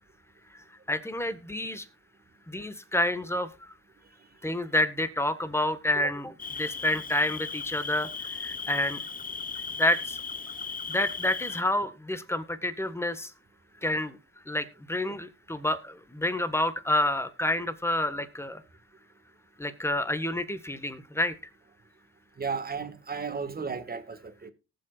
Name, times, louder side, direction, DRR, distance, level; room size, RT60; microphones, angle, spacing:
voice 1, 0.9-1.8 2.5-3.5 4.4-6.3 6.6-8.1 8.4-9.0 9.8-10.2 10.9-13.3 13.8-14.2 14.5-18.6 19.6-21.3, left 1 dB, 10° left, 1.5 m, -28 dB
Cricket, 6.4-11.6, left 5 dB, 30° left, 0.9 m, -37 dB
voice 2, 22.4-24.5, right 5 dB, 30° right, 1.7 m, -34 dB
19.0 x 7.6 x 2.4 m
cardioid pair, 90°, 30 cm